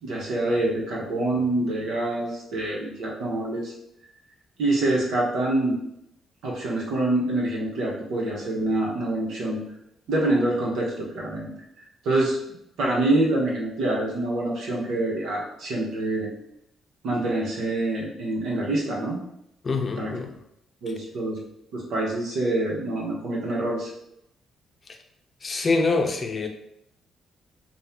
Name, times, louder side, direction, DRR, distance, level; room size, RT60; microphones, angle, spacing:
voice 1, 0.0-3.7 4.6-5.8 6.4-9.6 10.1-11.5 11.8-16.3 17.0-19.2 20.0-20.1 20.8-21.4 21.7-23.9, right 2 dB, 80° right, -3 dB, 1.2 m, -26 dB
voice 2, 19.6-20.3 25.4-26.5, left 3 dB, 35° left, 4 dB, 0.6 m, -25 dB
5.5 x 2.4 x 2.9 m, 0.81 s
cardioid pair, 90°, 0 cm